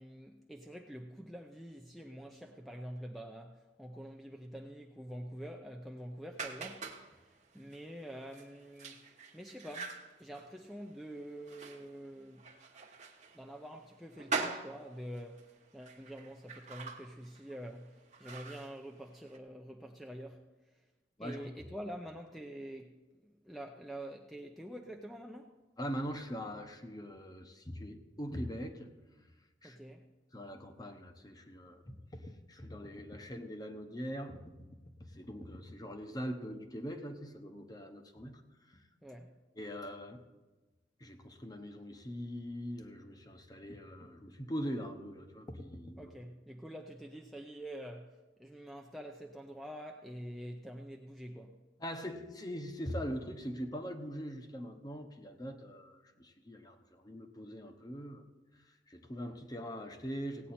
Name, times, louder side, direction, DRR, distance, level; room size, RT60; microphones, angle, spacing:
voice 1, 0.0-12.5 13.3-20.4 20.7-20.9 21.2-25.5 29.6-30.1 39.0-39.4 46.0-51.6, equal, ahead, 0.5 m, -47 dB
sound 1, 6.3-19.4, right 4 dB, 40° right, 1.1 m, -44 dB
voice 2, 21.2-21.5 25.8-28.9 29.6-29.8 30.3-34.6 35.0-38.4 38.7-38.8 39.6-40.2 41.0-46.1 51.8-58.2 58.9-60.5, equal, 20° left, 0.9 m, -42 dB
17.0 x 8.9 x 4.3 m
head